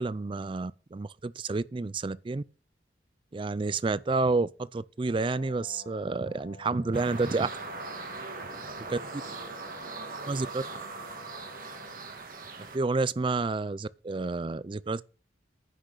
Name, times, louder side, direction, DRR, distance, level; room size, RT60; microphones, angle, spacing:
voice 1, 0.0-2.4 3.3-7.5 8.9-9.0 10.3-10.6 12.7-15.0, right 3 dB, 30° right, 0.4 m, -29 dB
Brass instrument, 5.0-12.1, left 4 dB, 60° left, 3.1 m, -50 dB
voice 2, 6.7-7.4 8.2-10.6 10.9-11.2, right 2 dB, 80° right, 4.9 m, -51 dB
sound 1, 6.9-12.8, right 4 dB, 50° right, 2.0 m, -40 dB
10.0 x 6.2 x 6.6 m
head